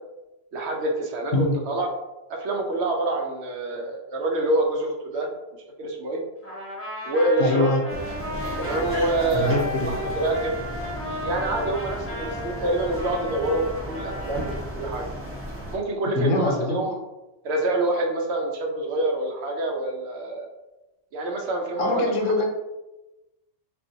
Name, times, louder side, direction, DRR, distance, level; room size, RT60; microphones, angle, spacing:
voice 1, 0.5-1.9 2.3-5.3 5.8-6.2 7.0-7.7 8.6-10.6 11.2-15.0 15.7-17.0 17.4-20.5 21.1-22.2, right 2 dB, 65° right, 1 dB, 0.8 m, -26 dB
Trumpet, 6.4-14.6, left 1 dB, 10° left, 1.2 m, -35 dB
voice 2, 7.4-7.8 9.3-9.9 16.1-16.8 21.8-22.4, left 3 dB, 90° left, 1 dB, 1.0 m, -23 dB
sound 1, 7.9-15.8, equal, 20° right, 0.4 m, -34 dB
3.5 x 2.5 x 2.6 m, 1.0 s
omnidirectional pair, 1.3 m